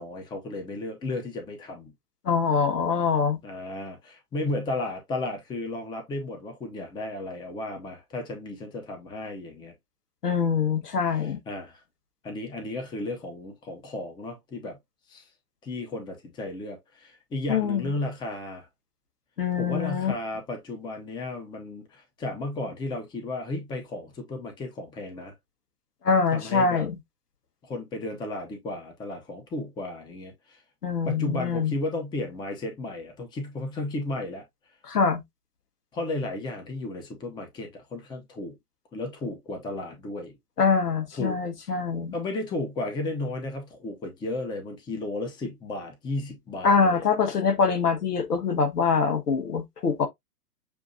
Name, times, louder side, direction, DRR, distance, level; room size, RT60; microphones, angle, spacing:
voice 1, 0.0-1.9 3.4-9.7 11.1-11.8 12.2-14.8 15.1-15.3 15.6-18.7 19.6-25.3 26.3-26.9 27.6-30.6 31.0-34.4 35.9-38.6 38.9-40.4 41.2-41.4 41.6-41.8 42.1-47.1, left 2 dB, 10° left, 0.7 m, -34 dB
voice 2, 2.2-3.4 10.2-11.4 17.5-17.9 19.4-20.1 26.0-27.0 30.8-31.7 34.9-35.2 40.6-42.1 46.6-50.1, left 5 dB, 80° left, 1.4 m, -24 dB
6.9 x 2.7 x 2.5 m
figure-of-eight pair, 115°, 47 cm